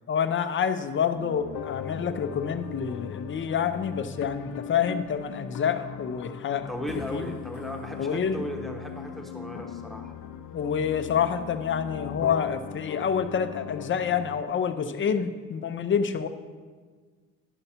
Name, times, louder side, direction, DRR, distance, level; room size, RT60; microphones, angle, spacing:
voice 1, 0.1-6.7 7.1-7.3 8.0-8.4 10.5-16.3, left 7 dB, 40° left, 10 dB, 0.6 m, -27 dB
sound 1, 1.1-14.4, left 9 dB, 85° left, 0.5 m, -39 dB
voice 2, 6.7-10.1, equal, ahead, 1 dB, 1.0 m, -37 dB
11.0 x 5.5 x 4.3 m, 1.5 s
cardioid pair, 90°, 30 cm